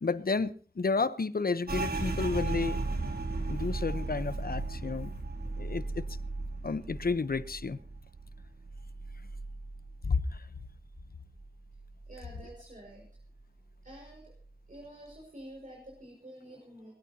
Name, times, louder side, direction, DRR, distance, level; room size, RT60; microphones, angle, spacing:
voice 1, 0.0-3.1 3.5-5.1 5.6-6.1 6.6-7.8 10.0-10.5, left 4 dB, 65° left, 0.9 m, -31 dB
sound 1, 1.7-11.1 11.4-12.6 12.9-13.4 13.9-14.4, right 3 dB, 70° right, 3.1 m, -36 dB
voice 2, 12.1-13.1 13.8-14.3 14.7-16.9, right 1 dB, 55° right, 5.7 m, -49 dB
20.5 x 20.0 x 2.9 m
wide cardioid pair, 70°, 16 cm